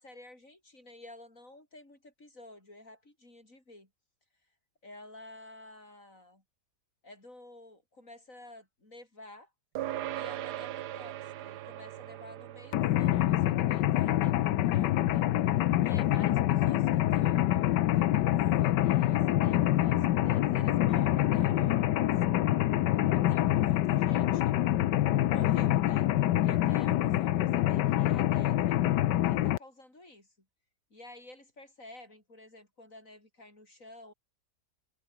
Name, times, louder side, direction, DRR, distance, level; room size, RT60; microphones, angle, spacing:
voice 1, 0.0-3.9 4.8-6.4 7.0-9.5 10.1-15.3 15.8-22.4 23.1-24.6 25.3-26.1 26.4-28.8 29.2-30.3 30.9-34.1, left 2 dB, 50° left, 7.8 m, -51 dB
sound 1, 9.7-19.4, right 13 dB, 70° right, 1.3 m, -43 dB
Mechanisms, 12.7-29.6, left 13 dB, 80° left, 1.4 m, -26 dB
omnidirectional pair, 1.8 m